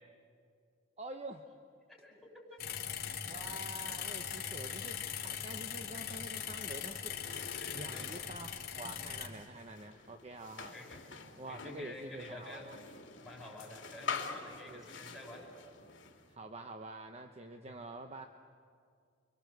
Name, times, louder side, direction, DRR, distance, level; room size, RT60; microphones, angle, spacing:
voice 1, 1.0-1.5 3.2-7.2 7.7-10.7 11.4-12.8 14.6-14.8 16.3-18.3, right 2 dB, 35° right, 6 dB, 0.9 m, -47 dB
voice 2, 1.9-2.6 7.6-8.1 9.3-9.4 10.7-11.0 11.5-12.7 13.2-15.4 17.6-17.8, left 1 dB, ahead, -5 dB, 7.5 m, -50 dB
sound 1, 2.6-9.3, left 8 dB, 50° left, 2.4 m, -40 dB
sound 2, 6.9-16.4, left 5 dB, 75° left, 2.6 m, -46 dB
30.0 x 24.0 x 8.0 m, 2.2 s
head